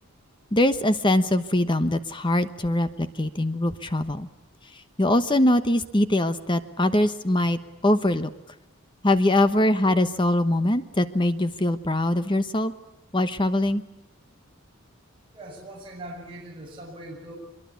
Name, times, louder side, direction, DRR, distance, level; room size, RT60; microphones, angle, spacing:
voice 1, 0.5-4.3 5.0-8.3 9.0-12.7 13.1-13.8, left 1 dB, 20° left, 11 dB, 1.0 m, -22 dB
voice 2, 15.3-17.3, right 1 dB, 25° right, -3 dB, 6.9 m, -41 dB
24.0 x 23.0 x 8.3 m, 0.94 s
head